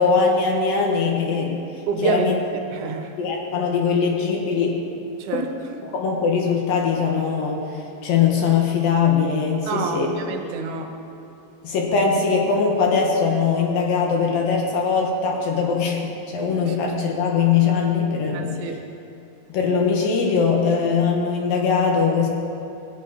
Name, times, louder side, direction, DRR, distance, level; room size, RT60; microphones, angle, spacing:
voice 1, 0.0-1.6 2.0-2.4 3.2-4.8 5.8-10.1 11.6-18.8 19.5-22.3, left 5 dB, 70° left, -1 dB, 2.6 m, -21 dB
voice 2, 1.9-3.1 5.2-5.5 9.7-10.9 16.7-16.8 18.3-18.8, right 4 dB, 80° right, 4 dB, 2.6 m, -27 dB
17.0 x 9.0 x 2.7 m, 2.8 s
omnidirectional pair, 4.5 m